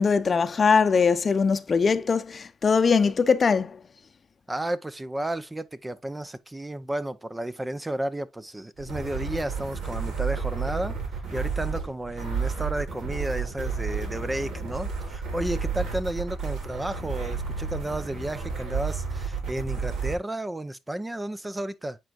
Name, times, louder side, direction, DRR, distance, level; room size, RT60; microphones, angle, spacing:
voice 1, 0.0-3.8, left 5 dB, 40° left, 0.6 m, -21 dB
voice 2, 4.5-22.0, right 1 dB, 15° right, 0.5 m, -32 dB
sound 1, 8.8-20.2, right 5 dB, 70° right, 3.8 m, -31 dB
8.8 x 4.6 x 2.4 m
cardioid pair, 90°, 0 cm